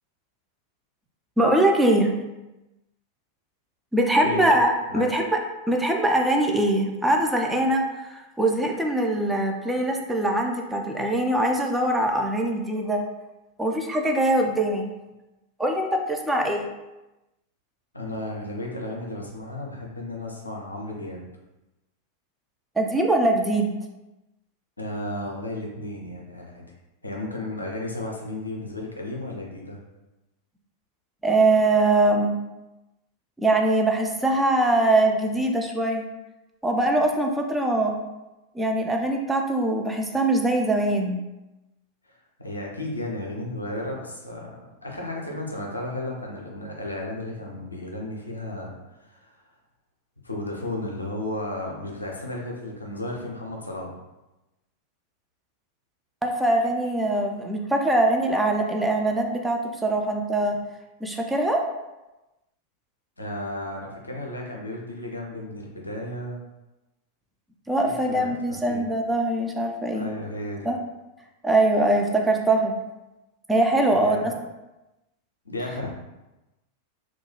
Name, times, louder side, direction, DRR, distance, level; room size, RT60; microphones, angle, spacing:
voice 1, 1.4-2.1 3.9-5.4 5.7-13.0 13.6-14.9 15.6-16.7 22.8-23.7 31.2-32.4 33.4-36.0 36.6-38.0 38.6-41.2 56.2-60.6 61.0-61.6 67.7-70.1 70.7-70.8 71.4-72.7 73.5-74.3, right 1 dB, 5° right, 1 dB, 0.3 m, -22 dB
voice 2, 17.9-21.2 24.8-26.7 27.0-29.8 42.1-44.5 44.8-48.8 49.0-49.4 50.2-54.0 63.2-66.4 67.9-68.8 69.9-70.7 74.0-74.3 75.4-75.9, left 1 dB, 80° left, -1 dB, 0.5 m, -33 dB
2.2 x 2.2 x 3.0 m, 1.0 s
figure-of-eight pair, 90°, 0 cm